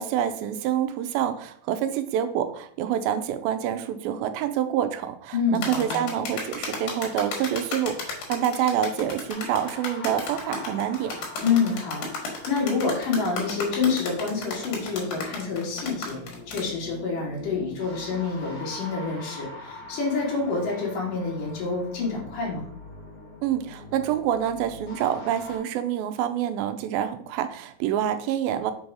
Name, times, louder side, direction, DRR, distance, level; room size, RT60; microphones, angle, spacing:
voice 1, 0.0-11.2 23.4-28.7, right 10 dB, 85° right, 9 dB, 2.4 m, -27 dB
voice 2, 5.3-6.1 11.4-16.2 16.5-22.7, left 4 dB, 65° left, -4 dB, 3.6 m, -27 dB
sound 1, 5.6-16.7, left 3 dB, 85° left, 3.3 m, -33 dB
sound 2, 9.3-25.6, left 2 dB, 45° left, 1.2 m, -44 dB
6.8 x 3.9 x 4.8 m, 0.63 s
omnidirectional pair, 4.1 m